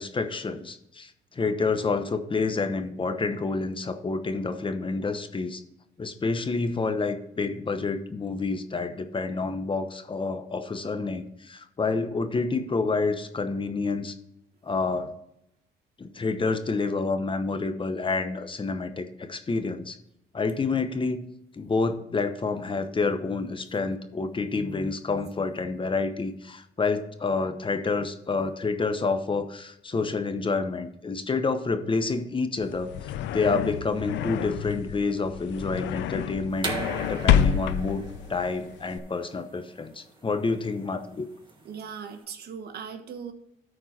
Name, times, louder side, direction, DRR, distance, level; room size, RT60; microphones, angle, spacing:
voice 1, 0.0-5.6 6.0-14.1 14.6-15.1 16.0-20.0 20.3-21.3 21.5-32.9 33.3-36.7 37.1-38.0 38.3-41.3, left 4 dB, 30° left, 8 dB, 1.0 m, -28 dB
sound 1, 32.6-39.0, left 9 dB, 80° left, 0.6 m, -28 dB
sound 2, 36.6-42.2, right 3 dB, 25° right, 2.2 m, -38 dB
voice 2, 41.6-43.3, right 7 dB, 60° right, 7 dB, 1.2 m, -39 dB
13.0 x 4.5 x 4.2 m, 0.81 s
cardioid pair, 85°, 18 cm